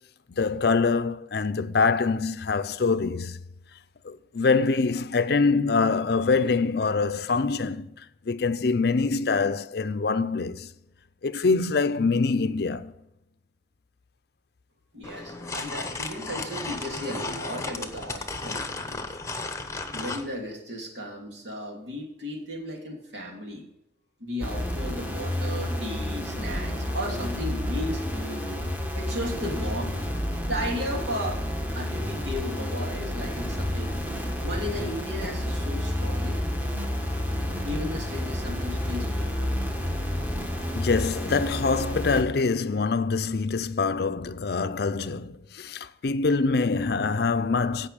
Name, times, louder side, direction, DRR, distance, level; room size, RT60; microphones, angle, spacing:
voice 1, 0.3-3.4 4.0-10.7 11.2-12.9 40.7-47.9, left 4 dB, 60° left, 0.5 m, -25 dB
voice 2, 14.9-19.0 19.9-23.6 24.2-28.6 28.9-30.0 30.5-31.4 31.7-34.1 34.4-36.4 37.6-39.6, left 1 dB, 75° right, 2.8 m, -35 dB
sound 1, 15.0-20.3, left 3 dB, 15° left, 0.9 m, -34 dB
sound 2, 24.4-42.2, left 1 dB, 10° right, 1.2 m, -30 dB
15.5 x 5.5 x 5.2 m
head